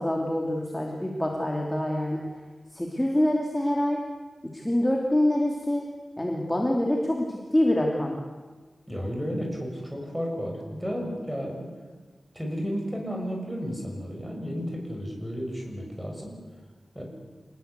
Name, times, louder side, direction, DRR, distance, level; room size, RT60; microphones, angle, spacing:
voice 1, 0.0-2.3 2.7-4.0 4.4-5.9 6.2-8.2, left 1 dB, 10° left, 0 dB, 2.9 m, -25 dB
voice 2, 8.9-11.7 12.3-16.3 16.9-17.0, equal, 5° right, 1 dB, 6.9 m, -32 dB
27.0 x 19.5 x 8.3 m, 1.4 s
wide cardioid pair, 100°, 0 cm